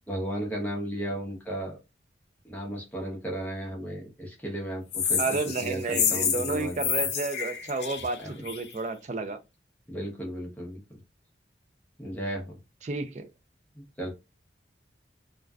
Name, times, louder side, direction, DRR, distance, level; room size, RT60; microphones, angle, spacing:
voice 1, 0.1-1.8 2.4-6.8 8.2-8.4 9.9-10.8 12.0-12.6 13.7-14.1, right 1 dB, 10° left, 0.7 m, -35 dB
sound 1, 4.9-8.7, left 7 dB, 70° left, 0.6 m, -29 dB
voice 2, 5.2-9.4 12.8-13.3, right 3 dB, 40° right, 0.4 m, -31 dB
2.5 x 2.2 x 2.2 m
head